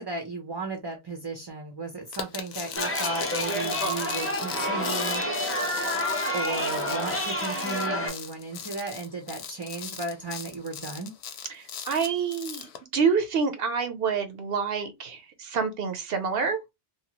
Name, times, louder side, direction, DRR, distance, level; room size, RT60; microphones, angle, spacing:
voice 1, 0.0-5.8 6.3-11.1, right 3 dB, 30° right, 0.5 m, -35 dB
sound 1, 2.1-12.8, left 8 dB, 90° left, 0.8 m, -38 dB
Chatter, 2.8-8.1, equal, 15° left, 0.5 m, -29 dB
voice 2, 11.5-12.7 12.9-16.6, right 5 dB, 70° right, 0.9 m, -27 dB
2.7 x 2.3 x 2.9 m
omnidirectional pair, 1.0 m